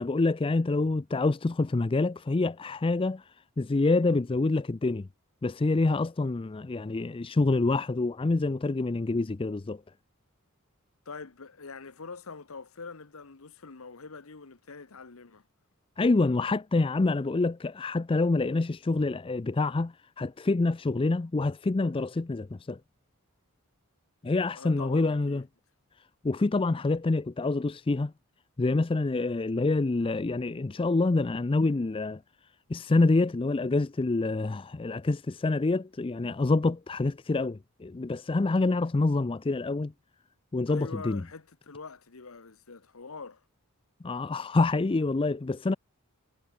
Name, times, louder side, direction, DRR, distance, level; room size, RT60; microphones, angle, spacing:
voice 1, 0.0-3.2 3.6-5.1 5.4-9.8 16.0-22.8 24.2-25.4 26.2-28.1 28.6-32.2 32.7-39.9 40.5-41.2 44.0-45.7, left 3 dB, 25° left, 0.4 m, -27 dB
voice 2, 11.0-15.5 24.6-25.4 40.7-43.4, left 4 dB, 65° left, 1.1 m, -44 dB
head